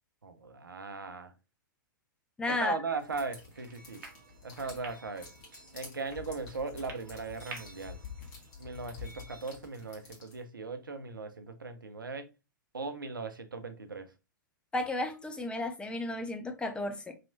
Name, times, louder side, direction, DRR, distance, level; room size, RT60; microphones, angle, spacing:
voice 1, 0.2-1.3 2.5-4.0 4.4-5.3 5.7-8.0 8.6-12.3 12.7-14.1, right 4 dB, 80° right, 0.6 m, -38 dB
voice 2, 2.4-2.8 14.7-17.1, left 2 dB, 10° left, 0.5 m, -33 dB
sound 1, 3.0-10.4, left 6 dB, 40° left, 1.5 m, -49 dB
sound 2, 3.5-9.5, right 4 dB, 55° right, 0.9 m, -52 dB
3.2 x 2.9 x 2.6 m
figure-of-eight pair, 105°, 11 cm